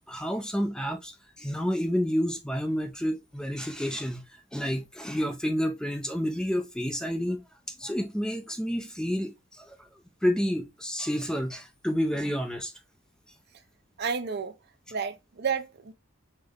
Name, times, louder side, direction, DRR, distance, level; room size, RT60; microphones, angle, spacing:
voice 1, 0.1-9.9 10.2-12.7, equal, 5° left, 0.4 m, -30 dB
voice 2, 14.0-14.5 14.9-15.9, right 6 dB, 50° right, 0.6 m, -31 dB
5.3 x 2.1 x 3.5 m
head